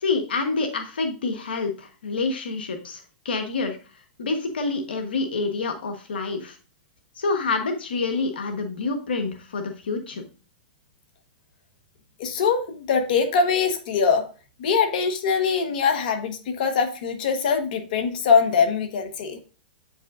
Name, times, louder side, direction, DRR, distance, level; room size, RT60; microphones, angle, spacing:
voice 1, 0.0-3.8 4.2-6.6 7.1-10.2, left 3 dB, 85° left, 5 dB, 1.1 m, -27 dB
voice 2, 12.2-14.2 14.6-19.4, left 6 dB, 65° left, 6 dB, 1.2 m, -22 dB
8.2 x 5.4 x 2.5 m, 0.35 s
hypercardioid pair, 125°, 5 cm